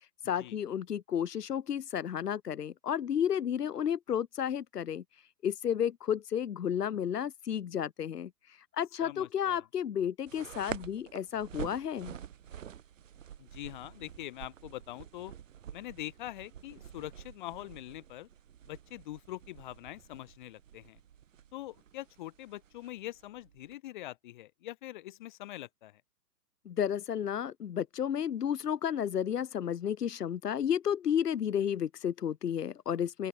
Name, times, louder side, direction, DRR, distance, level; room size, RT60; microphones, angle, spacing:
voice 1, 0.2-5.0 5.4-8.3 8.7-12.1 26.6-33.3, left 9 dB, 75° left, 1.6 m, -32 dB
voice 2, 9.0-9.6 13.4-15.3 15.7-18.3 18.7-21.0 21.5-26.0, left 15 dB, 30° left, 3.6 m, -44 dB
sound 1, 10.3-23.7, right 9 dB, 50° right, 5.9 m, -48 dB
open air
hypercardioid pair, 170°, 48 cm